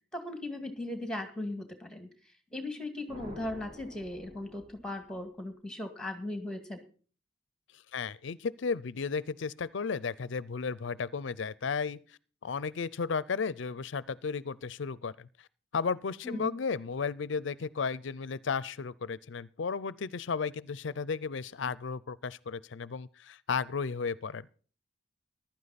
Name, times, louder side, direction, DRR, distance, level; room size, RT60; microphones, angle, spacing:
voice 1, 0.1-2.1 2.5-6.8 16.2-16.5, left 1 dB, 5° left, 1.9 m, -38 dB
sound 1, 3.1-5.3, left 1 dB, 35° right, 4.2 m, -49 dB
voice 2, 7.9-12.0 12.4-15.5 15.7-24.5, left 5 dB, 70° left, 0.5 m, -34 dB
15.0 x 12.0 x 4.1 m
head